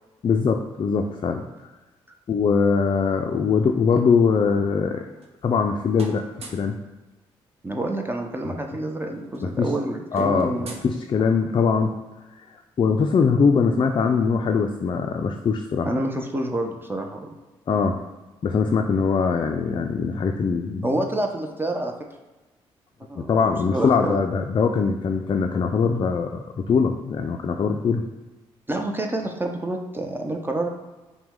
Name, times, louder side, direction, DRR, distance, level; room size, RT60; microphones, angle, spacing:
voice 1, 0.2-1.4 2.3-5.1 5.4-6.2 6.5-6.8 9.4-9.7 10.1-10.6 10.8-12.0 12.8-15.9 17.7-18.0 18.4-20.9 23.2-28.0, left 5 dB, 40° left, 4 dB, 0.4 m, -22 dB
sound 1, 4.9-5.7 5.9-6.8 8.1-8.2 8.5-8.7 9.0-11.6, right 3 dB, 55° right, 0.8 m, -44 dB
voice 2, 7.6-10.8 15.8-17.3 20.8-21.9 23.1-24.2 28.7-30.7, right 1 dB, 15° right, 3 dB, 0.6 m, -28 dB
5.7 x 2.2 x 3.6 m, 1.2 s
supercardioid pair, 50°, 12 cm